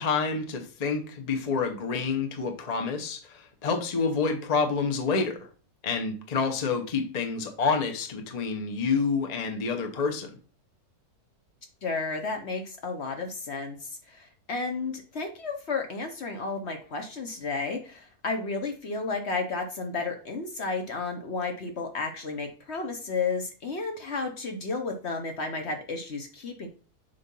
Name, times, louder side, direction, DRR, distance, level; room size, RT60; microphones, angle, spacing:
voice 1, 0.0-5.4 5.8-10.3, left 5 dB, 35° left, 5 dB, 0.8 m, -28 dB
voice 2, 11.8-26.7, left 4 dB, 50° left, 4 dB, 1.1 m, -32 dB
6.9 x 2.6 x 5.3 m, 0.38 s
omnidirectional pair, 1.6 m